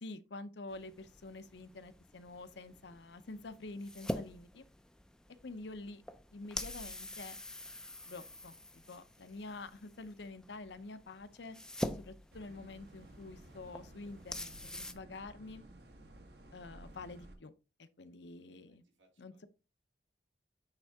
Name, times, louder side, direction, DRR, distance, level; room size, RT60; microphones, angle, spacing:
voice 1, 0.0-4.6 5.4-6.0 6.3-7.4 8.1-8.6 8.9-11.6 11.9-15.6 16.5-17.5 17.8-18.8 19.2-19.5, left 3 dB, 70° left, 0.7 m, -48 dB
sound 1, 0.7-14.9, left 1 dB, 5° left, 0.4 m, -45 dB
sound 2, 12.3-17.3, right 1 dB, 60° right, 1.2 m, -55 dB
voice 2, 18.1-19.4, right 1 dB, 85° right, 2.6 m, -75 dB
8.9 x 3.7 x 3.5 m
head